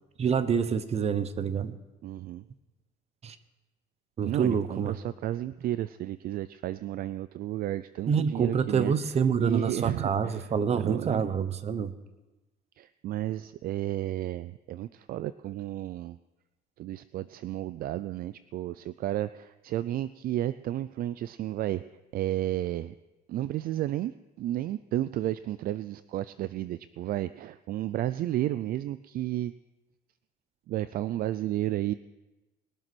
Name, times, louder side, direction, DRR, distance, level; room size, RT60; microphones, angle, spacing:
voice 1, 0.2-1.8 3.2-3.4 4.2-4.9 8.0-11.9, right 6 dB, 40° right, 13 dB, 1.0 m, -27 dB
voice 2, 2.0-2.4 4.2-8.9 9.4-11.3 12.8-16.2 16.8-21.8 22.1-22.9 23.3-24.1 24.4-29.5 30.7-31.9, right 13 dB, 60° right, 15 dB, 0.4 m, -32 dB
21.0 x 7.5 x 6.1 m, 1.1 s
cardioid pair, 110°, 17 cm